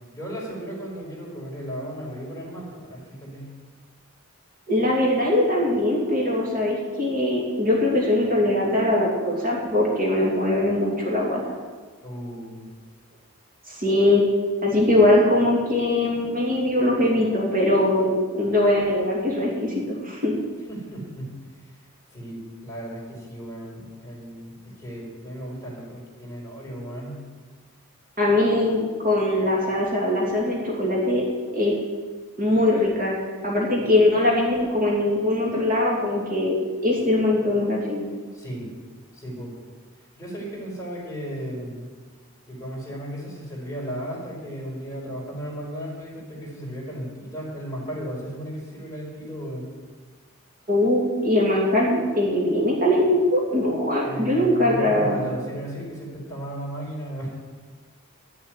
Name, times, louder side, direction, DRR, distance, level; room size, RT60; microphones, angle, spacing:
voice 1, 0.1-3.5 12.0-12.7 20.7-21.7 22.1-27.2 38.3-38.7 39.1-39.5 40.2-41.9 42.5-49.7 54.0-57.4, equal, 15° left, -5 dB, 4.7 m, -35 dB
voice 2, 4.7-11.6 13.7-14.2 14.6-20.3 28.2-31.3 31.5-31.7 32.4-33.1 33.4-36.5 36.8-38.0 50.7-55.2, left 1 dB, 40° right, -4 dB, 2.9 m, -21 dB
12.5 x 7.3 x 9.4 m, 1.5 s
head